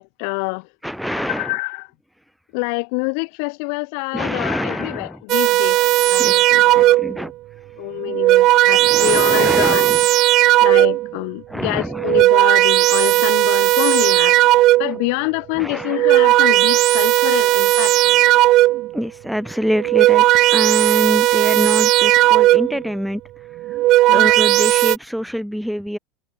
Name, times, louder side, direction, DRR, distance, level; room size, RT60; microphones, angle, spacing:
voice 1, 0.0-0.6 1.1-1.9 2.5-5.8 6.1-7.0 7.8-10.0 10.6-14.4 14.8-18.3 24.1-24.3, left 40 dB or more, 70° left, 2.1 m, -26 dB
voice 2, 0.8-1.6 4.1-5.2 6.2-7.3 8.7-10.1 11.5-12.2 14.9-15.0 15.6-16.0 18.9-20.2 20.5-23.2 23.7-23.8 24.1-26.0, equal, ahead, 0.6 m, -25 dB
sound 1, 5.3-7.2 8.0-11.1 11.9-15.1 15.8-18.9 19.7-22.9 23.6-25.0, right 17 dB, 55° right, 0.5 m, -15 dB
supercardioid pair, 110°, 0 cm